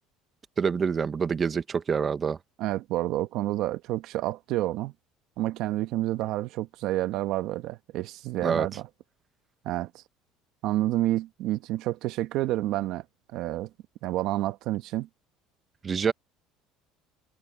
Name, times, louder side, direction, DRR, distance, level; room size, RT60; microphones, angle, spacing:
voice 1, 0.6-2.4 8.4-8.7 15.8-16.1, right 6 dB, 30° right, 1.1 m, -26 dB
voice 2, 2.6-4.9 5.4-8.8 9.6-10.0 10.6-13.0 13.3-13.7 14.0-15.1, right 15 dB, 65° right, 1.1 m, -29 dB
cardioid pair, 120°, 0 cm